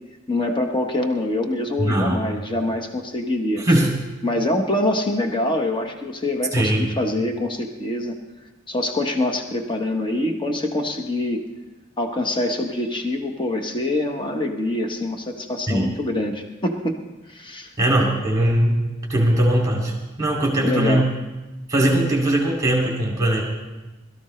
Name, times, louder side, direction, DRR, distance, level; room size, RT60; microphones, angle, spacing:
voice 1, 0.3-3.6 4.2-8.1 8.7-11.4 12.0-17.0 17.3-17.7 20.6-21.1, left 1 dB, 25° left, 4 dB, 1.1 m, -25 dB
voice 2, 1.8-2.3 3.6-3.9 6.5-6.9 15.7-15.9 17.8-18.8 19.1-19.9 20.2-21.1 21.7-23.4, right 1 dB, 20° right, -2 dB, 2.6 m, -20 dB
21.5 x 13.5 x 3.2 m, 1.1 s
head